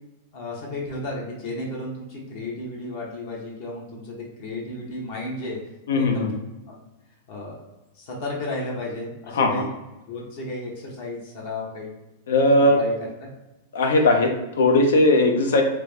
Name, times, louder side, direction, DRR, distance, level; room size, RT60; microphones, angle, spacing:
voice 1, 0.3-5.6 5.9-6.3 6.7-6.8 7.3-7.7 7.9-9.7 10.1-11.9 12.6-12.9 13.2-13.3, left 2 dB, 60° left, -3 dB, 1.0 m, -33 dB
voice 2, 5.9-6.3 9.3-9.5 12.3-12.8 13.7-15.6, left 2 dB, 85° left, 3 dB, 0.6 m, -18 dB
3.3 x 2.1 x 3.3 m, 0.99 s
hypercardioid pair, 135°, 0 cm